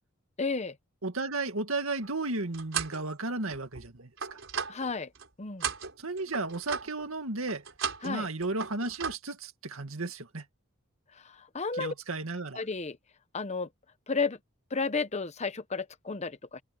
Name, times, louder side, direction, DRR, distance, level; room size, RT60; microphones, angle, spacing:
voice 1, 0.4-0.8 4.7-5.1 5.4-5.7 8.0-8.3 11.1-11.9 12.6-13.0 13.3-13.7 14.1-14.4 14.7-16.6, left 4 dB, 30° left, 0.9 m, -32 dB
voice 2, 1.0-4.4 6.0-7.6 8.0-10.4 11.7-12.6, right 3 dB, 80° right, 2.1 m, -34 dB
sound 1, 2.0-3.0 3.5-5.3 5.6-7.1 7.5-8.2 8.4-9.2, right 7 dB, 65° right, 5.7 m, -36 dB
open air
head